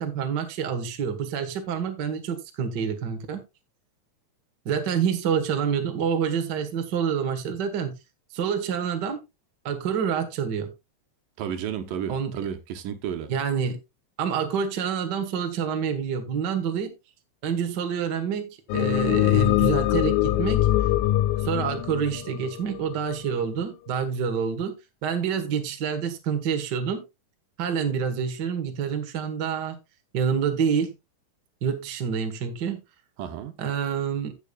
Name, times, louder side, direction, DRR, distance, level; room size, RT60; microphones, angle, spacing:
voice 1, 0.0-3.4 4.6-7.9 8.3-9.2 9.6-10.7 12.1-12.3 13.3-13.8 14.2-16.9 17.4-18.5 18.7-20.7 21.4-24.7 25.0-27.0 27.6-29.8 30.1-30.9 31.6-32.8 33.6-34.3, right 7 dB, 55° right, 1.1 m, -27 dB
voice 2, 11.4-13.3 33.2-33.5, right 8 dB, 75° right, 2.6 m, -32 dB
sound 1, 18.7-23.1, left 14 dB, 85° left, 2.4 m, -23 dB
15.5 x 6.9 x 2.3 m
omnidirectional pair, 4.1 m